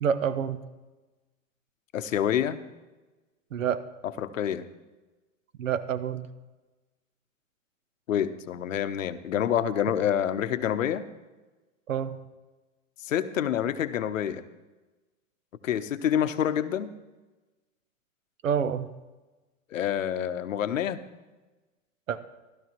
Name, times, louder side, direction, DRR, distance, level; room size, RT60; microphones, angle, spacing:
voice 1, 0.0-0.6 3.5-3.8 5.6-6.3 11.9-12.2 18.4-18.9 22.1-22.2, right 8 dB, 90° right, 13 dB, 0.8 m, -28 dB
voice 2, 1.9-2.6 4.2-4.6 8.1-11.1 13.1-14.4 15.6-16.9 19.7-21.0, left 9 dB, 85° left, 12 dB, 0.7 m, -27 dB
15.0 x 12.0 x 3.0 m, 1.2 s
hypercardioid pair, 105°, 38 cm